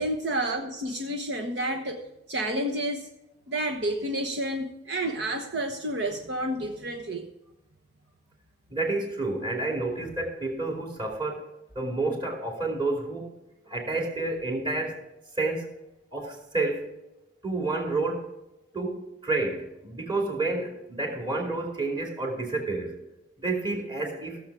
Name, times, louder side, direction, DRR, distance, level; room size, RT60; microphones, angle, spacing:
voice 1, 0.0-2.0 2.3-3.1 3.5-7.3, right 1 dB, 60° right, 3 dB, 1.1 m, -30 dB
voice 2, 8.7-11.4 11.7-13.3 13.7-15.0 15.4-15.7 16.1-16.9 17.4-18.3 18.7-22.9 23.4-24.4, right 2 dB, 25° right, 1 dB, 2.6 m, -29 dB
16.5 x 7.2 x 4.8 m, 0.92 s
head